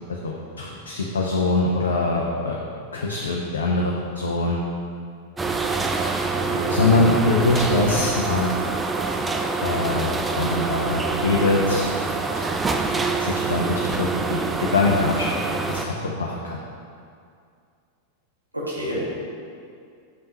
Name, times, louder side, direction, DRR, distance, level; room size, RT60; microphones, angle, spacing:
voice 1, 0.1-2.6 2.9-4.6 6.7-8.5 9.6-11.9 12.3-12.5 13.2-15.4 15.7-16.6, left 2 dB, 70° left, -2 dB, 0.5 m, -23 dB
sound 1, 5.4-15.9, right 4 dB, 15° right, 0.3 m, -25 dB
voice 2, 6.3-6.7 18.5-19.1, equal, 85° right, -6 dB, 1.3 m, -29 dB
6.3 x 5.4 x 2.8 m, 2.3 s
figure-of-eight pair, 90°, 0 cm